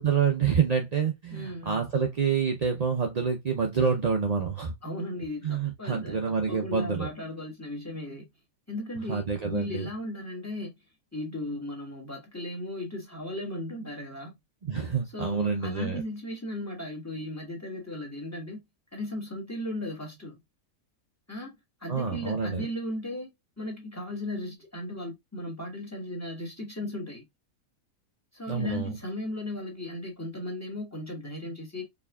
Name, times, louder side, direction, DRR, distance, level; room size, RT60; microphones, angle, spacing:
voice 1, 0.0-4.7 5.4-7.1 9.1-9.9 14.7-16.0 21.9-22.7 28.5-29.0, right 6 dB, 60° right, 0.4 m, -27 dB
voice 2, 1.3-1.8 4.8-6.2 6.5-8.3 8.7-10.7 11.1-14.3 15.1-18.6 18.9-20.4 21.3-21.5 21.8-23.3 23.6-27.3 28.3-31.8, left 1 dB, 10° left, 1.6 m, -36 dB
4.6 x 3.5 x 2.3 m
omnidirectional pair, 1.5 m